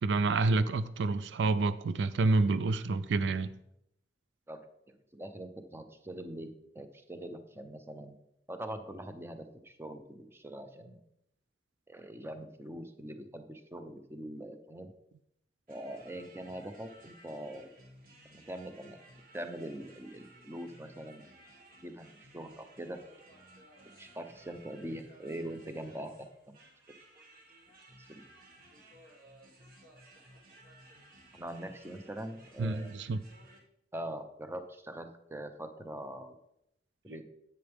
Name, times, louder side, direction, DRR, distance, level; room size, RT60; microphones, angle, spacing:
voice 1, 0.0-3.5 32.6-33.2 37.1-37.2, right 3 dB, 80° right, 0.4 m, -28 dB
voice 2, 4.9-8.2 8.5-11.0 11.9-14.9 15.7-17.7 18.3-19.0 19.3-21.2 21.8-23.0 24.0-26.6 28.1-28.2 31.3-33.0 33.9-36.4 37.0-37.2, right 1 dB, 15° right, 0.7 m, -43 dB
sound 1, 15.7-33.6, right 1 dB, 55° right, 1.9 m, -57 dB
10.0 x 7.9 x 3.5 m
head